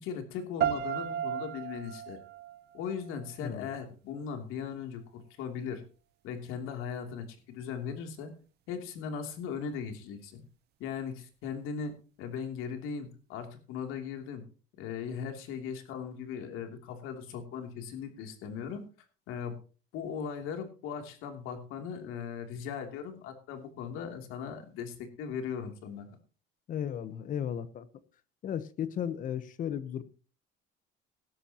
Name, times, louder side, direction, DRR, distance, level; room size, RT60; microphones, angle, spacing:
voice 1, 0.0-2.2 2.7-5.8 6.2-8.3 8.7-10.4 10.8-11.9 12.2-14.4 14.8-18.9 19.3-19.6 19.9-26.2, left 6 dB, 80° left, 5 dB, 3.0 m, -38 dB
sound 1, 0.6-3.6, right 10 dB, 50° right, 0.7 m, -35 dB
voice 2, 26.7-27.9 28.4-30.0, left 9 dB, 40° left, 14 dB, 1.0 m, -35 dB
16.5 x 12.5 x 3.0 m, 0.36 s
cardioid pair, 170°, 21 cm